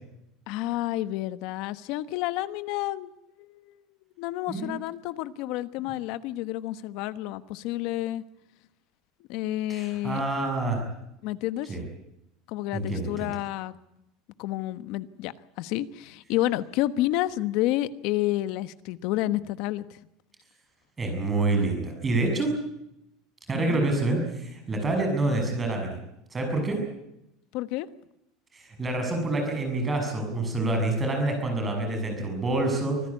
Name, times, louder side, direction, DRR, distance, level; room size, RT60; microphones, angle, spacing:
voice 1, 0.5-3.1 3.4-3.7 4.2-8.2 9.3-10.2 11.2-11.8 12.5-13.7 14.4-20.0 23.5-23.8 27.5-27.9, left 15 dB, 55° left, 14 dB, 1.2 m, -30 dB
voice 2, 9.7-10.8 11.7-11.8 12.7-13.3 21.0-22.5 23.5-26.0 26.3-26.8 28.5-33.0, right 2 dB, 15° right, 3 dB, 6.7 m, -27 dB
25.5 x 15.5 x 9.7 m, 0.86 s
cardioid pair, 170°, 0 cm